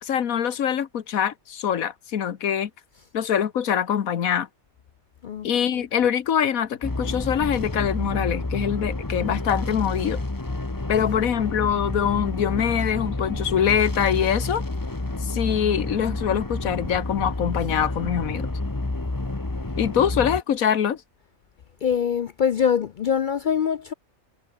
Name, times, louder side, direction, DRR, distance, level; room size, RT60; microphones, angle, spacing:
voice 1, 0.0-2.7 3.1-4.5 5.4-10.2 10.9-14.6 15.2-18.5 19.8-21.0, left 8 dB, 85° left, 1.6 m, -24 dB
sound 1, 6.8-20.4, left 2 dB, 15° left, 1.2 m, -29 dB
voice 2, 21.8-23.9, left 7 dB, 65° left, 0.5 m, -23 dB
omnidirectional pair, 1.4 m